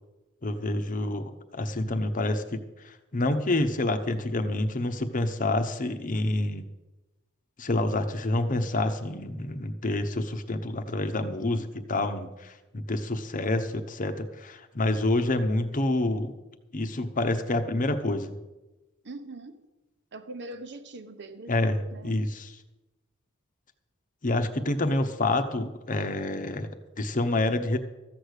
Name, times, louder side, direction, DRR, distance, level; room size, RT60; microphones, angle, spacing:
voice 1, 0.4-6.6 7.6-16.3 16.7-18.4 21.5-22.5 24.2-27.8, left 2 dB, 40° left, 7 dB, 1.0 m, -28 dB
voice 2, 19.0-19.7 20.1-22.2, right 2 dB, 55° right, 9 dB, 1.1 m, -42 dB
14.0 x 6.6 x 8.2 m, 1.1 s
head